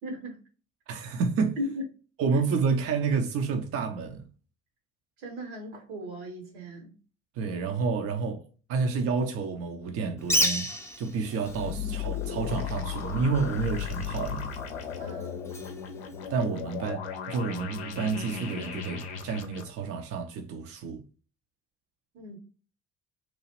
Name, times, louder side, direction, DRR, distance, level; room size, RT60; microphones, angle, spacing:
voice 1, 0.0-0.4 1.6-1.8 5.2-6.9 15.0-15.4 22.1-22.4, equal, 75° right, 1.0 m, -37 dB
voice 2, 0.9-1.6 2.2-4.3 7.3-10.7 11.0-14.5 16.3-21.0, right 5 dB, 45° right, 0.5 m, -29 dB
Bird, 10.2-16.8, equal, 10° left, 0.5 m, -34 dB
sound 1, 11.5-19.6, left 8 dB, 80° left, 0.5 m, -35 dB
2.9 x 2.4 x 2.8 m
figure-of-eight pair, 50°, 33 cm